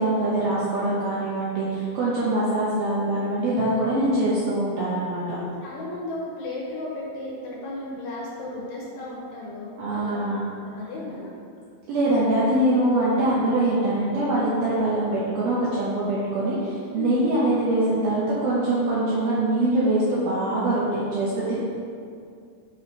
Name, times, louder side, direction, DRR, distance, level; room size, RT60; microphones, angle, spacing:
voice 1, 0.0-5.2 9.8-10.4 11.9-21.6, right 1 dB, 75° right, -8 dB, 2.2 m, -23 dB
voice 2, 5.3-10.2 10.5-11.3 13.2-13.4 16.9-17.3, left 2 dB, 70° left, -5 dB, 3.1 m, -35 dB
7.8 x 4.2 x 5.3 m, 2.3 s
omnidirectional pair, 5.5 m